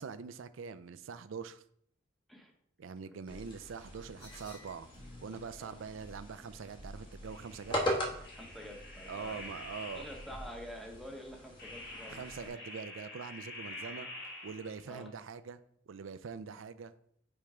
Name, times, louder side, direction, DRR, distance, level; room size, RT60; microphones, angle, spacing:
voice 1, 0.0-1.6 2.8-4.9 5.2-7.8 9.1-10.1 12.1-14.1 14.4-15.6 15.9-16.9, right 5 dB, 75° right, 12 dB, 0.4 m, -43 dB
voice 2, 3.1-3.5 5.6-5.8 8.3-9.4 10.0-12.5 14.9-15.1, equal, ahead, 2 dB, 0.9 m, -48 dB
sound 1, 3.3-12.5, equal, 25° left, 1.2 m, -41 dB
sound 2, 4.2-5.5 7.2-10.6 11.6-15.0, left 1 dB, 55° left, 1.6 m, -48 dB
5.3 x 4.4 x 4.8 m, 0.67 s
head